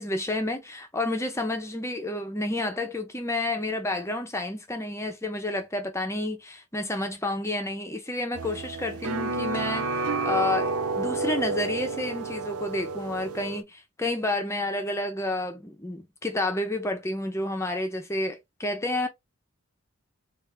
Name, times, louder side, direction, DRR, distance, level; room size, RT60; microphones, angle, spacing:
voice 1, 0.0-19.1, left 2 dB, 15° left, 0.7 m, -30 dB
sound 1, 8.3-13.6, right 3 dB, 90° right, 0.5 m, -30 dB
3.6 x 2.6 x 3.2 m
head